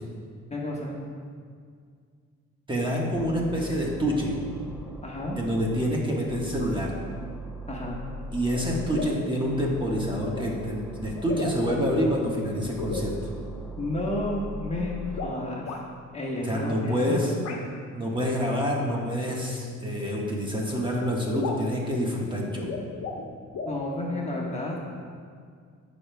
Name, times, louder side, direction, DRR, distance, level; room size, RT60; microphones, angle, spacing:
voice 1, 0.5-0.9 5.0-5.4 7.7-8.0 13.8-15.8 16.1-17.2 23.7-24.8, left 1 dB, 20° left, -3 dB, 1.3 m, -31 dB
voice 2, 2.7-4.4 5.4-6.9 8.3-13.1 16.4-17.3 17.9-22.7, equal, 15° right, -3 dB, 1.3 m, -27 dB
sound 1, 3.1-6.0 6.3-9.1 9.4-12.2 12.6-15.3, right 1 dB, ahead, 0.7 m, -40 dB
sound 2, 8.5-8.7 8.9-9.3 10.4-10.5 11.2-12.1 12.8-13.1 15.1-15.8 17.4-17.6 18.9-19.0 20.2-20.3 20.7-20.8 21.0-21.1 21.3-21.7 22.5-23.3 23.5-23.8, left 4 dB, 65° left, 1.1 m, -34 dB
14.0 x 5.2 x 2.3 m, 2.1 s
cardioid pair, 90°, 30 cm